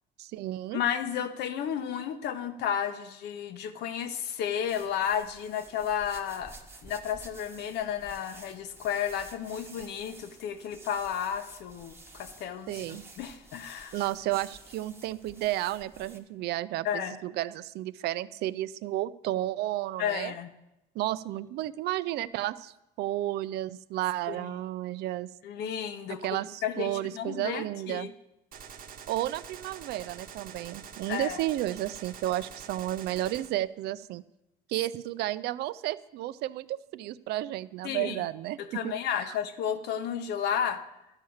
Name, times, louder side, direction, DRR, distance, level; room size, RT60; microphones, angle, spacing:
voice 1, 0.2-0.8 12.7-13.0 13.9-20.3 21.0-25.3 26.2-28.1 29.1-34.2 34.7-38.9 39.2-39.4, right 15 dB, 75° right, 17 dB, 0.4 m, -32 dB
voice 2, 0.7-6.5 6.8-14.0 16.8-17.1 20.0-20.5 24.3-24.6 25.4-28.1 31.1-31.4 37.8-38.3 38.6-40.8, left 8 dB, 80° left, 10 dB, 0.9 m, -32 dB
sound 1, 4.7-16.2, right 2 dB, 15° right, 1.0 m, -51 dB
Gunshot gunfire, 28.5-33.5, right 7 dB, 55° right, 0.9 m, -46 dB
12.0 x 4.9 x 7.1 m, 0.92 s
cardioid pair, 110°, 17 cm